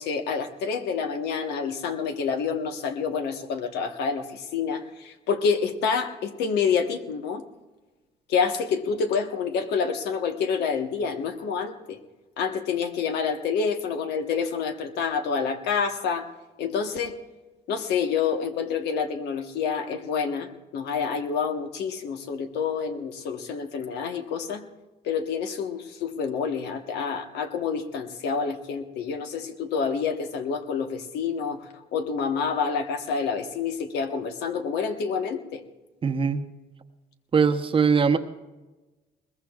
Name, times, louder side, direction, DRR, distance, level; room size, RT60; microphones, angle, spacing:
voice 1, 0.0-7.4 8.3-12.0 12.4-16.3 16.6-17.2 17.7-24.6 25.0-35.6, left 6 dB, 80° left, 6 dB, 1.2 m, -28 dB
voice 2, 36.0-36.4 37.3-38.2, right 5 dB, 30° right, 6 dB, 0.9 m, -21 dB
21.5 x 20.0 x 2.4 m, 1.1 s
cardioid pair, 110°, 17 cm